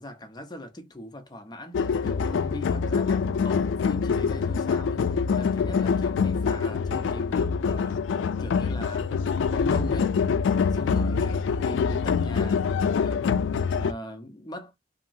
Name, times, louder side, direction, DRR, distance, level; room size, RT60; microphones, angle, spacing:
voice 1, 0.0-9.2 9.5-10.1 10.7-12.7 13.0-13.3 13.6-14.8, left 1 dB, 20° left, 0.6 m, -40 dB
sound 1, 1.7-13.9, left 5 dB, 80° left, 0.3 m, -25 dB
2.9 x 2.8 x 2.6 m
head